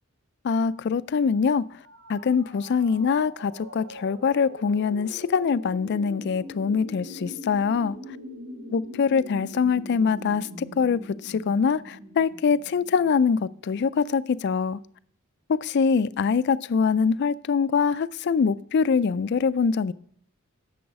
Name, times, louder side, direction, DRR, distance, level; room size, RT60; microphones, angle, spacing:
voice 1, 0.4-1.7 2.1-8.0 8.7-14.8 15.5-19.9, left 5 dB, 50° left, 0.3 m, -24 dB
sound 1, 1.8-13.5, left 1 dB, 60° right, 1.6 m, -42 dB
10.0 x 7.0 x 4.7 m
head